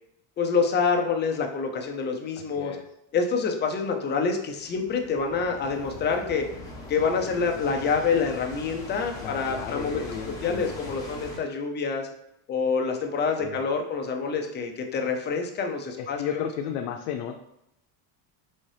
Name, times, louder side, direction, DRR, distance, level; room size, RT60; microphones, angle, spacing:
voice 1, 0.4-2.7 3.1-6.5 6.9-10.0 10.4-12.1 12.5-16.5, left 5 dB, 25° left, 3 dB, 0.4 m, -27 dB
sound 1, 4.6-11.4, left 1 dB, 10° left, 0.9 m, -41 dB
voice 2, 9.2-11.0 13.4-13.6 16.0-17.4, left 9 dB, 90° left, 3 dB, 0.6 m, -33 dB
4.1 x 3.7 x 3.2 m, 0.83 s
cardioid pair, 150°, 46 cm